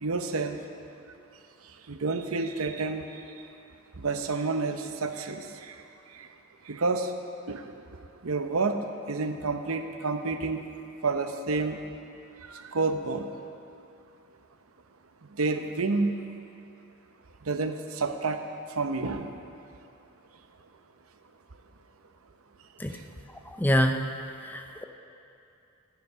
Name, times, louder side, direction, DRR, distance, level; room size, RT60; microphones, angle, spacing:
voice 1, 0.0-0.6 1.9-3.1 4.0-5.7 6.7-7.1 7.5-7.7 8.2-8.8 9.1-10.6 11.0-11.8 12.5-13.3 15.4-16.1 17.5-18.4 18.8-19.3, right 3 dB, 90° right, 7 dB, 0.8 m, -29 dB
voice 2, 23.6-24.0 24.4-24.8, equal, 10° left, 5 dB, 0.6 m, -25 dB
18.0 x 7.1 x 5.6 m, 2.6 s
head